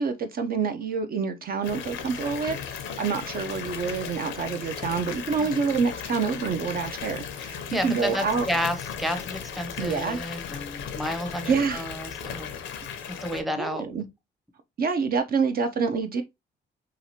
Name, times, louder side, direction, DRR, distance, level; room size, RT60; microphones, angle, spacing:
voice 1, 0.0-8.5 9.8-10.2 11.4-11.9 13.6-14.1 14.8-16.2, right 5 dB, 50° right, 0.5 m, -27 dB
Water tap faucet / Bathtub (filling or washing) / Fill (with liquid), 1.6-13.4, left 7 dB, 85° left, 0.6 m, -36 dB
voice 2, 7.4-12.7 13.2-13.8, equal, ahead, 0.6 m, -31 dB
2.9 x 2.4 x 2.7 m
supercardioid pair, 65°, 19 cm